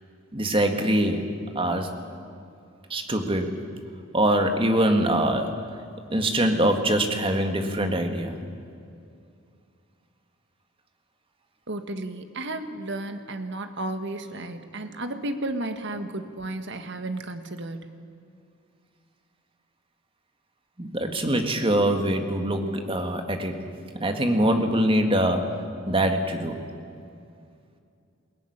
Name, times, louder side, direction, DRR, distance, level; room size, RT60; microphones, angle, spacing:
voice 1, 0.3-1.3 1.6-1.9 2.9-3.6 4.1-5.5 6.1-8.4 20.8-23.7 24.0-25.5 25.9-26.6, right 1 dB, 25° right, 5 dB, 1.9 m, -23 dB
voice 2, 11.7-17.9, right 2 dB, 55° right, 8 dB, 1.6 m, -33 dB
22.0 x 17.0 x 10.0 m, 2.5 s
head